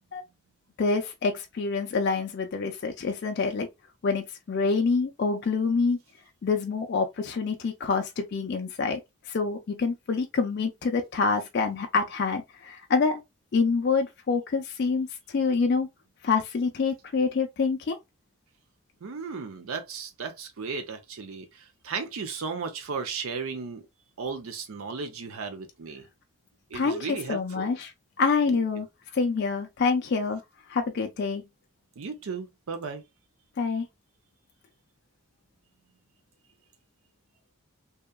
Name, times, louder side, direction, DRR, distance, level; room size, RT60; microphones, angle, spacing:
voice 1, 0.8-3.7 4.0-6.0 6.4-9.0 9.3-13.2 13.5-15.9 16.2-18.0 26.7-27.9 28.2-28.9 29.1-30.4 30.7-31.4 33.6-33.9, left 4 dB, 50° left, 0.3 m, -26 dB
voice 2, 19.0-23.8 24.2-26.1 26.7-27.7 28.5-28.8 32.0-33.0, right 5 dB, 70° right, 0.5 m, -35 dB
2.7 x 2.2 x 2.2 m
head